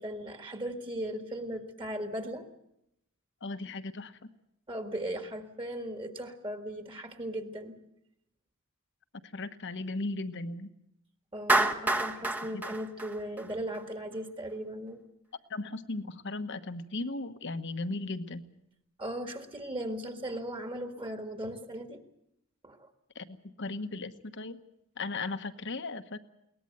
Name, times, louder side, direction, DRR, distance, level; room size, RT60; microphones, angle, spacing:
voice 1, 0.0-2.5 4.7-7.8 11.3-15.0 19.0-22.0 22.6-22.9, right 1 dB, 25° right, 6 dB, 1.9 m, -37 dB
voice 2, 3.4-4.3 9.3-10.7 11.9-12.0 12.5-12.7 15.5-18.5 23.1-24.6 25.0-26.2, left 2 dB, 55° left, 10 dB, 1.2 m, -37 dB
Clapping, 11.5-13.8, right 2 dB, 10° right, 1.0 m, -28 dB
22.0 x 19.0 x 7.9 m, 0.79 s
head